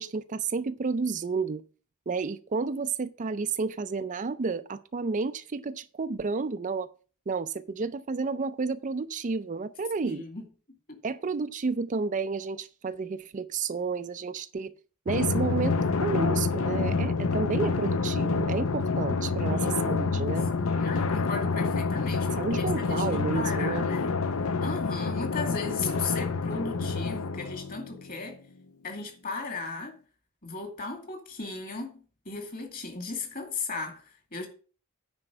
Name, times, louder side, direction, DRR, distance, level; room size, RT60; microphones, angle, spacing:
voice 1, 0.0-1.6 2.1-6.9 7.3-10.2 11.0-14.7 15.1-20.5 22.4-23.9, right 4 dB, 35° right, 0.4 m, -31 dB
voice 2, 10.0-10.5 10.9-11.0 19.5-24.1 24.6-28.4 28.8-30.0 30.4-32.0 32.3-34.5, left 4 dB, 40° left, 2.4 m, -36 dB
Drum, 15.1-28.2, left 4 dB, 70° left, 0.7 m, -28 dB
9.8 x 4.5 x 7.6 m
head